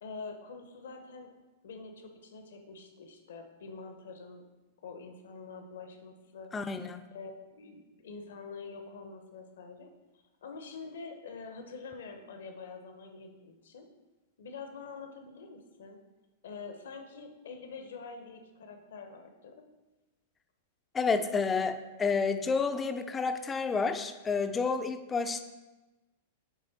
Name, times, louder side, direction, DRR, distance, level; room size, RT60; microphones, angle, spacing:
voice 1, 0.0-1.3 1.6-4.5 4.8-9.9 10.4-13.9 14.4-16.0 16.4-19.7, left 4 dB, 70° left, 5 dB, 0.8 m, -46 dB
voice 2, 6.5-7.0 20.9-25.4, left 4 dB, 20° left, 9 dB, 0.4 m, -30 dB
8.1 x 3.3 x 4.1 m, 1.1 s
figure-of-eight pair, 100°, 0 cm